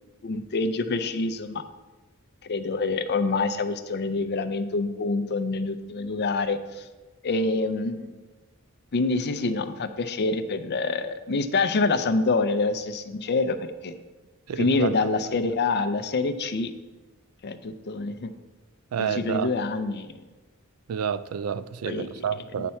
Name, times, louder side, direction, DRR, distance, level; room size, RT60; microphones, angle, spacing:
voice 1, 0.2-1.6 2.4-6.9 7.2-8.2 8.9-13.9 14.6-16.7 17.4-18.3 19.0-20.1 21.9-22.1, left 3 dB, 50° left, 0.5 m, -26 dB
voice 2, 14.5-15.1 18.9-19.5 20.9-22.7, right 7 dB, 85° right, 0.4 m, -29 dB
8.2 x 4.3 x 5.6 m
head